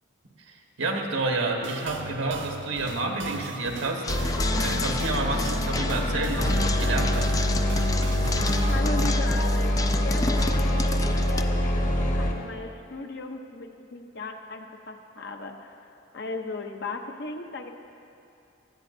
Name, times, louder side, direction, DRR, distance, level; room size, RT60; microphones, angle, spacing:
voice 1, 0.5-7.3, right 2 dB, 80° right, 1 dB, 1.4 m, -30 dB
sound 1, 1.6-8.8, right 5 dB, 60° right, 0.5 m, -38 dB
sound 2, 4.0-11.4, left 4 dB, 15° left, 0.3 m, -33 dB
sound 3, 4.1-12.3, left 1 dB, 40° left, 1.1 m, -25 dB
voice 2, 8.4-10.9 11.2-15.9 16.1-17.7, left 3 dB, 55° left, 5 dB, 0.7 m, -37 dB
19.0 x 12.5 x 2.7 m, 2.7 s
head